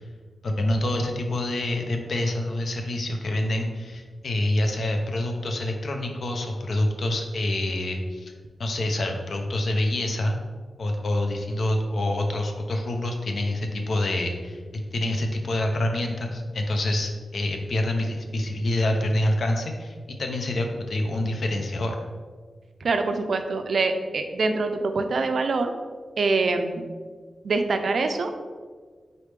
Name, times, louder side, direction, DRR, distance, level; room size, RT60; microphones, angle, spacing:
voice 1, 0.4-8.3 8.6-10.4 10.8-14.6 14.9-22.0, left 1 dB, 60° left, 3 dB, 0.5 m, -26 dB
voice 2, 22.8-25.7 26.2-26.8 27.4-28.3, right 3 dB, 65° right, 7 dB, 0.3 m, -24 dB
4.0 x 3.3 x 3.2 m, 1.5 s
wide cardioid pair, 140°, 0 cm